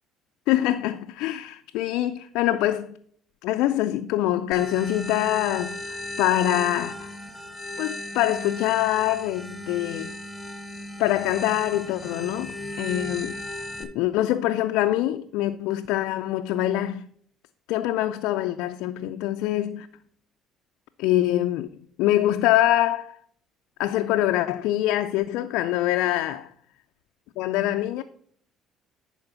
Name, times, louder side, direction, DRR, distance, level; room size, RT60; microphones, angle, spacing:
voice 1, 0.5-3.0 3.4-7.1 7.8-10.1 11.0-13.4 13.8-17.0 17.7-19.9 21.0-21.7 22.0-23.2 23.8-26.5 27.4-28.0, left 14 dB, 80° left, 0.4 m, -24 dB
sound 1, 4.5-13.8, left 1 dB, 5° left, 1.9 m, -36 dB
10.5 x 4.4 x 5.7 m
supercardioid pair, 75°, 0 cm